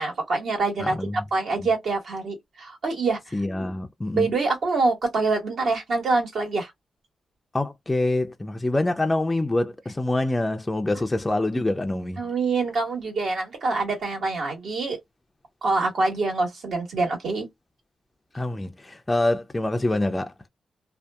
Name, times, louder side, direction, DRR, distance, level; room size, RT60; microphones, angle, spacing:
voice 1, 0.0-0.9 1.3-3.3 4.1-6.7 12.2-15.0 15.6-17.5, right 3 dB, 70° right, 1.4 m, -25 dB
voice 2, 0.8-1.2 3.3-4.3 7.5-12.2 18.3-20.5, left 2 dB, 15° left, 0.3 m, -25 dB
2.6 x 2.2 x 2.2 m
cardioid pair, 110°, 0 cm